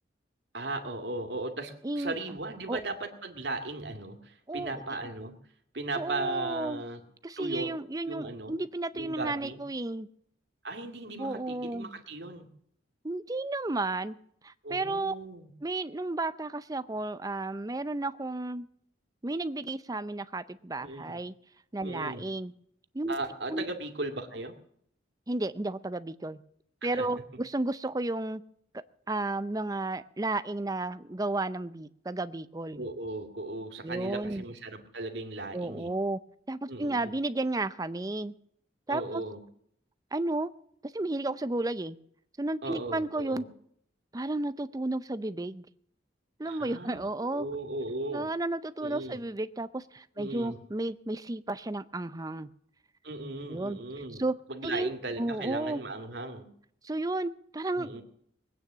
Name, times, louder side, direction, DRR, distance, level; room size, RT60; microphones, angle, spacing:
voice 1, 0.5-5.4 5.7-7.0 7.4-7.7 8.0-8.6 8.9-9.6 10.6-12.5 14.6-15.5 20.8-21.2 21.8-22.3 23.1-24.6 26.9-27.1 32.7-35.9 36.7-37.2 38.9-39.4 42.6-43.4 46.5-48.3 48.8-49.3 50.2-50.6 53.0-56.5 57.8-58.0, right 2 dB, 65° right, 5 dB, 2.1 m, -37 dB
voice 2, 1.8-2.1 2.7-2.8 4.5-4.8 5.9-6.8 7.2-10.1 11.2-11.9 13.0-14.2 14.4-15.1 15.6-18.7 19.2-21.3 21.7-22.5 22.9-23.2 23.5-23.6 25.3-26.4 26.8-28.4 29.1-32.9 33.8-34.4 35.5-36.2 36.5-38.3 38.9-39.2 40.1-40.5 40.9-42.0 42.4-43.4 44.1-45.7 46.4-47.5 48.1-52.5 53.5-53.8 54.2-54.4 54.6-54.9 55.2-55.8 56.8-57.9, right 2 dB, 20° right, 14 dB, 0.5 m, -32 dB
20.0 x 9.2 x 7.3 m, 0.69 s
head